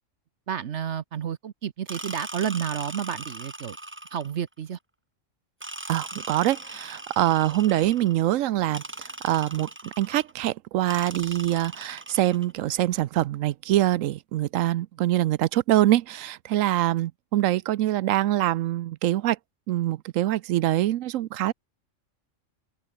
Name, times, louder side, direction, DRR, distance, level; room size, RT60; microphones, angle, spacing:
voice 1, 0.5-3.8 4.1-4.8, right 8 dB, 65° right, 1.1 m, -31 dB
sound 1, 1.9-4.4 5.6-8.2 8.7-10.3 10.9-12.5, right 2 dB, 10° right, 0.9 m, -40 dB
voice 2, 5.9-19.4 19.7-21.5, right 14 dB, 85° right, 1.0 m, -24 dB
open air
omnidirectional pair, 1.3 m